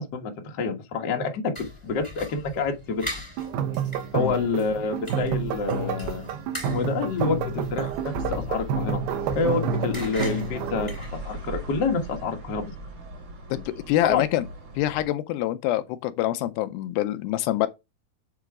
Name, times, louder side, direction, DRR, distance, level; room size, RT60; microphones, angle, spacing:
voice 1, 0.0-1.6 1.8-3.1 4.1-6.3 6.7-9.0 9.3-12.7 14.0-14.2, left 4 dB, 55° left, 1.1 m, -28 dB
sound 1, 1.5-11.6, left 2 dB, 10° left, 2.7 m, -40 dB
sound 2, 3.4-11.0, right 5 dB, 85° right, 2.8 m, -29 dB
sound 3, 7.2-15.1, right 1 dB, 55° right, 4.0 m, -40 dB
voice 2, 13.5-14.5 14.8-17.7, left 14 dB, 80° left, 2.3 m, -25 dB
7.3 x 3.8 x 4.7 m
omnidirectional pair, 4.3 m